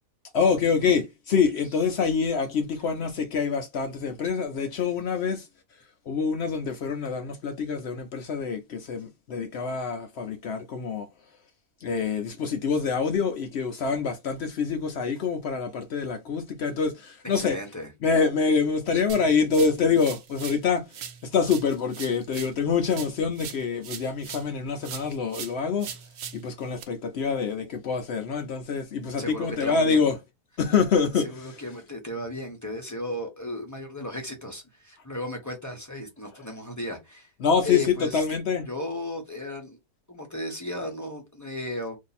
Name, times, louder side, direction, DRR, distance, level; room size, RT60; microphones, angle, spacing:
voice 1, 0.3-5.5 6.1-11.1 11.8-17.6 18.0-20.9 21.3-25.9 26.3-30.1 30.6-31.5 37.4-38.7, left 5 dB, 70° left, 0.6 m, -26 dB
voice 2, 17.3-17.9 29.2-30.1 31.1-37.3 37.6-38.2 38.7-39.8 40.1-42.0, left 1 dB, 15° left, 0.6 m, -35 dB
sound 1, 19.1-20.6 20.9-24.5 24.8-26.8, right 8 dB, 65° right, 0.9 m, -40 dB
2.7 x 2.6 x 4.0 m
omnidirectional pair, 1.7 m